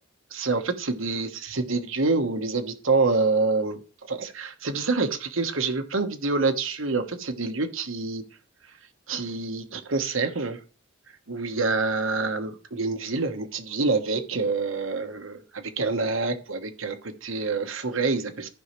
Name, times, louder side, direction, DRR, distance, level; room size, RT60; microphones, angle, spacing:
voice 1, 0.3-3.8 4.1-8.2 9.1-10.6 11.3-18.5, right 3 dB, 65° right, 7 dB, 1.2 m, -27 dB
14.5 x 5.6 x 3.2 m, 0.35 s
head